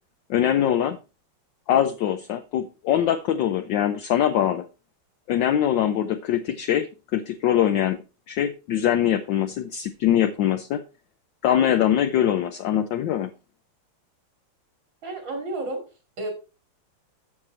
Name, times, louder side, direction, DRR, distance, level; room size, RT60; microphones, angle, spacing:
voice 1, 0.3-1.0 1.7-4.7 5.3-10.8 11.4-13.3, left 10 dB, 70° left, 1.2 m, -23 dB
voice 2, 15.0-15.8 16.2-16.3, right 2 dB, 55° right, 3.0 m, -31 dB
8.0 x 7.2 x 4.3 m
omnidirectional pair, 2.4 m